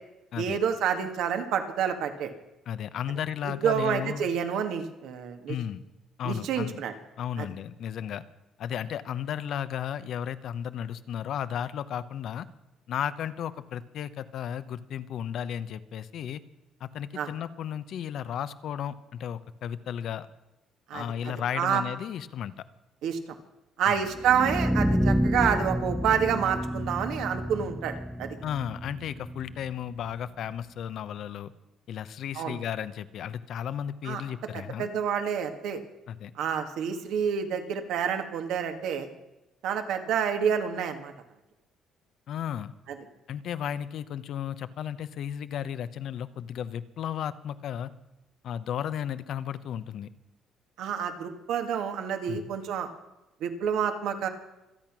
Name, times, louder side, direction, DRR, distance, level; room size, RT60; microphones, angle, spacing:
voice 1, 0.4-2.3 3.4-5.6 6.2-6.9 7.4-7.5 17.1-17.3 20.9-21.0 21.5-21.8 23.0-23.2 23.8-27.9 28.2-28.4 32.3-32.6 34.0-34.2 34.8-35.8 36.4-39.1 39.6-41.1 50.8-52.9 53.4-54.3, right 7 dB, 80° right, 6 dB, 1.8 m, -28 dB
voice 2, 2.7-4.2 5.5-5.8 6.2-6.8 7.2-8.2 8.6-12.5 12.9-16.4 16.8-20.3 20.9-22.6 23.9-24.0 28.4-31.5 31.9-34.9 36.1-36.3 42.3-42.7 43.3-47.9 48.4-50.1 52.3-52.5, left 9 dB, 65° left, 14 dB, 0.8 m, -34 dB
sound 1, 24.1-30.1, equal, ahead, 1.3 m, -29 dB
25.5 x 8.8 x 6.1 m, 0.98 s
cardioid pair, 90°, 0 cm